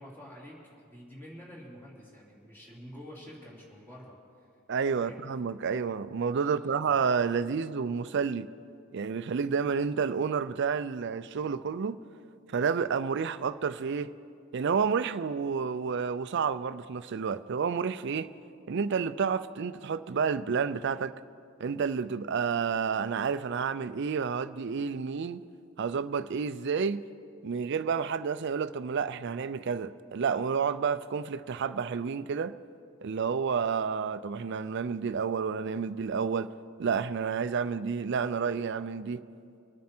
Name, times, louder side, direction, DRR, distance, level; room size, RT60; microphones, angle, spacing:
voice 1, 0.0-4.5 4.9-5.2 6.4-6.7, equal, 10° left, 3.0 m, -48 dB
voice 2, 4.7-8.5 8.9-12.0 12.5-14.1 14.5-18.3 18.7-21.1 21.6-25.4 25.8-27.0 27.4-32.5 33.0-36.5 36.8-39.2, right 6 dB, 55° right, 0.4 m, -30 dB
24.5 x 9.4 x 4.4 m
head